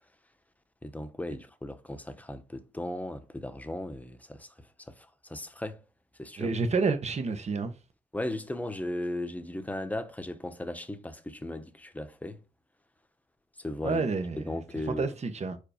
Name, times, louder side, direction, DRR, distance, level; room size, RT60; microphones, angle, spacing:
voice 1, 0.8-5.8 6.2-6.5 8.1-12.4 13.6-14.0 14.4-15.1, left 1 dB, 10° left, 1.1 m, -37 dB
voice 2, 6.4-7.7 13.8-14.5 14.9-15.6, right 4 dB, 45° right, 1.3 m, -29 dB
4.9 x 4.4 x 5.1 m
cardioid pair, 65°, 15 cm